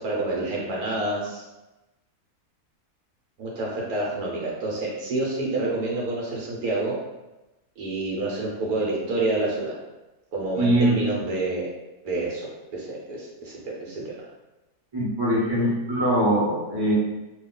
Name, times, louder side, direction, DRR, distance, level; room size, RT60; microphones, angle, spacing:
voice 1, 0.0-1.4 3.4-7.0 7.8-9.8 10.3-11.7 12.0-14.3 15.6-15.7, right 2 dB, 75° right, -3 dB, 1.2 m, -28 dB
voice 2, 10.5-10.9 14.9-16.9, right 1 dB, 20° right, -8 dB, 1.0 m, -22 dB
2.7 x 2.3 x 3.7 m, 1.0 s
omnidirectional pair, 1.7 m